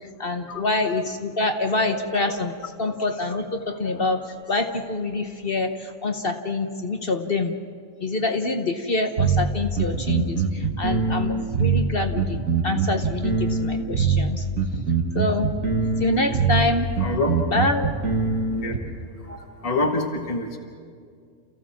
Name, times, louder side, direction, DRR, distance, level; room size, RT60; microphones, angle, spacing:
voice 1, 0.0-7.5 8.0-14.5 15.1-15.5 16.0-16.9 17.5-17.9, left 2 dB, 45° left, 6 dB, 1.1 m, -26 dB
sound 1, 9.2-18.8, right 5 dB, 60° right, 1.9 m, -23 dB
voice 2, 17.0-17.3 18.3-18.7 19.2-20.6, left 2 dB, 25° left, 2 dB, 1.5 m, -27 dB
29.0 x 15.0 x 7.3 m, 2.2 s
omnidirectional pair, 1.6 m